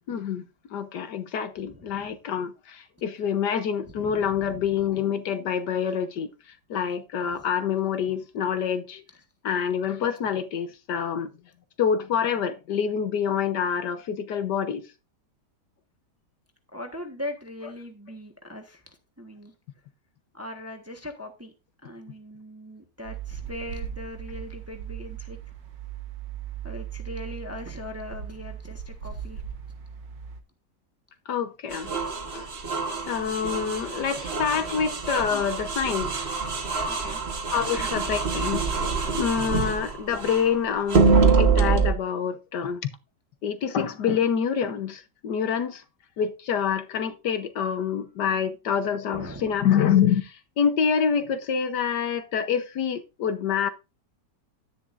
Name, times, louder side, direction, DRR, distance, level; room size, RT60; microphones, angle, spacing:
voice 1, 0.1-0.4 0.7-6.3 6.7-9.0 9.4-11.3 11.8-14.9 31.3-31.9 32.3-32.5 33.1-36.2 37.5-38.6 39.1-42.8 43.4-45.8 46.2-53.7, left 7 dB, 70° left, 1.5 m, -26 dB
voice 2, 1.6-2.1 3.8-4.8 7.3-7.4 8.0-8.1 16.7-18.8 19.2-19.5 20.3-21.5 21.8-25.4 26.6-29.4 33.2-33.3 34.5-34.7 36.9-37.2 49.1-49.6, left 1 dB, 10° right, 1.1 m, -40 dB
sound 1, 23.0-30.4, right 9 dB, 80° right, 1.9 m, -38 dB
sound 2, 31.7-40.5 40.9-41.9, right 4 dB, 40° right, 1.4 m, -25 dB
11.0 x 10.0 x 2.6 m
omnidirectional pair, 1.9 m